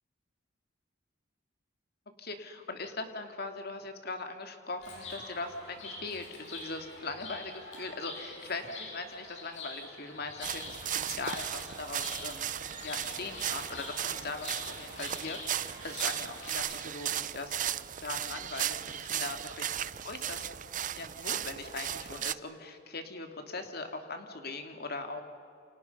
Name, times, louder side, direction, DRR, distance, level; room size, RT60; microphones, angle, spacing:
voice 1, 2.2-12.5 12.8-19.7 20.0-20.4 21.0-25.2, left 3 dB, 55° left, 6 dB, 2.6 m, -40 dB
Chirp tweet, 4.8-16.5, left 3 dB, 70° left, 7.9 m, -45 dB
sound 1, 10.4-22.3, right 10 dB, 40° right, 0.6 m, -36 dB
29.5 x 28.0 x 5.5 m, 2.5 s
head